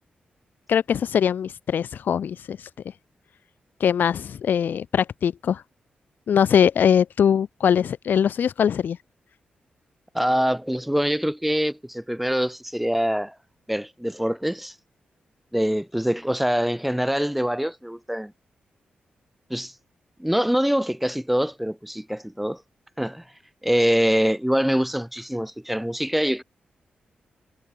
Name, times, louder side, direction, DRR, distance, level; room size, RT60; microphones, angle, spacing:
voice 1, 0.7-2.7 3.8-5.6 6.3-9.0, left 8 dB, 75° left, 1.1 m, -21 dB
voice 2, 10.1-13.3 13.7-14.7 15.5-18.3 19.5-19.7 20.2-22.6 23.0-23.2 23.6-26.4, equal, 5° right, 1.0 m, -24 dB
cardioid pair, 65°, 3 cm